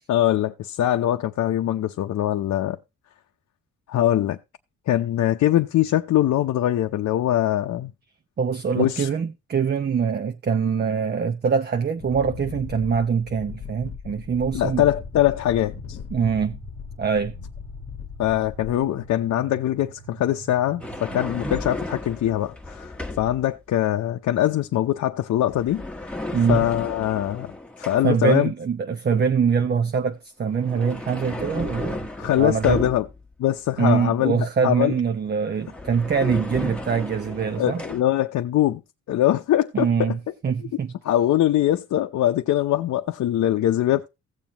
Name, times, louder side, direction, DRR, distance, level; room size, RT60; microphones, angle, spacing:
voice 1, 0.1-2.8 3.9-4.4 4.9-7.9 8.8-9.1 14.5-16.0 18.2-22.9 23.2-25.8 26.5-27.5 27.8-28.5 32.2-33.1 33.4-34.9 37.6-38.8 39.1-40.2 41.0-44.1, left 12 dB, 65° left, 0.7 m, -22 dB
voice 2, 8.4-14.8 16.1-16.6 17.0-17.3 26.3-26.6 28.0-32.1 32.4-32.8 33.8-37.8 39.7-40.9, right 6 dB, 35° right, 0.7 m, -23 dB
Wind, 12.0-19.1, left 8 dB, 50° left, 1.1 m, -38 dB
sound 1, 14.6-21.3, right 6 dB, 80° right, 4.1 m, -45 dB
sound 2, 20.8-23.5 25.5-28.3 30.4-33.3 35.3-35.4 35.6-38.0, left 1 dB, 5° left, 1.3 m, -34 dB
16.0 x 7.1 x 2.9 m
cardioid pair, 90°, 30 cm